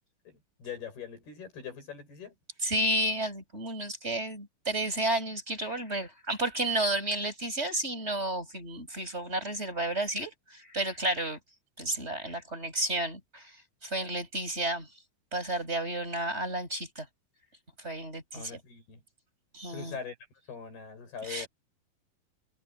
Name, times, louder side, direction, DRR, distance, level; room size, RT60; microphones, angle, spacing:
voice 1, 0.3-2.3 18.3-19.0 19.7-20.2 20.5-21.5, left 7 dB, 85° left, 9.6 m, -42 dB
voice 2, 2.6-11.4 11.8-13.5 13.8-14.9 15.3-17.1 17.8-18.6 19.5-20.0 21.2-21.5, right 1 dB, 15° right, 7.0 m, -32 dB
omnidirectional pair, 4.4 m